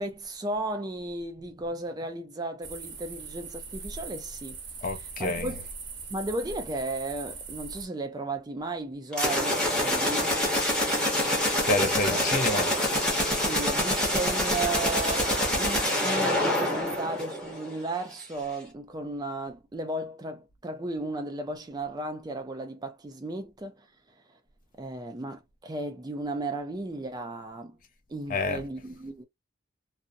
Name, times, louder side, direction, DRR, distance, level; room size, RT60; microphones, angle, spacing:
voice 1, 0.0-4.6 5.2-5.6 6.1-10.3 12.1-12.2 13.3-15.3 15.6-23.9 24.8-27.8 28.1-29.2, right 2 dB, 20° right, 0.3 m, -34 dB
sound 1, 2.6-7.9, right 4 dB, 70° right, 0.8 m, -41 dB
voice 2, 4.8-5.6 11.7-12.7 28.3-28.7, left 2 dB, 45° left, 0.5 m, -28 dB
sound 2, 9.1-17.8, left 1 dB, 5° left, 0.8 m, -26 dB
2.5 x 2.0 x 2.5 m
head